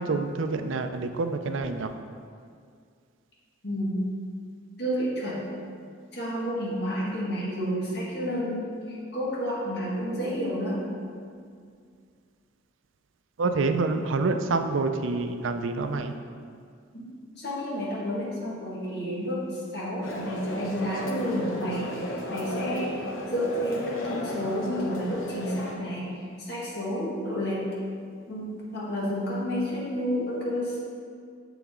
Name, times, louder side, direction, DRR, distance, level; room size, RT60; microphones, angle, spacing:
voice 1, 0.0-1.9 13.4-16.1, right 3 dB, 80° right, 7 dB, 0.5 m, -27 dB
voice 2, 3.6-4.0 4.8-5.4 6.1-10.8 16.9-17.1 17.4-19.4 19.7-27.6 28.3-30.8, equal, 55° left, -6 dB, 1.8 m, -30 dB
sound 1, 20.0-25.7, left 1 dB, 90° left, 1.0 m, -34 dB
7.0 x 6.9 x 3.7 m, 2.2 s
head